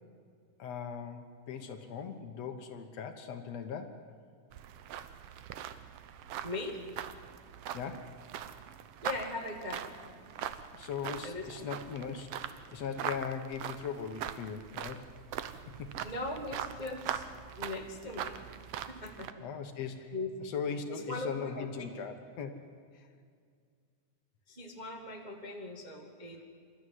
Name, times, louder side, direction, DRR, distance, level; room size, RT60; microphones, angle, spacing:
voice 1, 0.6-4.1 7.7-8.2 10.7-12.3 12.7-15.0 15.8-15.9 19.4-20.1 20.4-22.6 22.9-23.1, left 6 dB, 65° left, 6 dB, 2.1 m, -39 dB
sound 1, 4.5-19.3, right 10 dB, 75° right, 1.4 m, -42 dB
voice 2, 6.4-6.8 9.0-9.9 11.2-11.7 16.0-17.3 17.6-18.3 18.9-19.4 20.1-20.3 20.9-22.0 24.5-26.4, left 2 dB, 25° right, 1 dB, 0.9 m, -40 dB
26.5 x 13.0 x 9.4 m, 2.2 s
omnidirectional pair, 3.6 m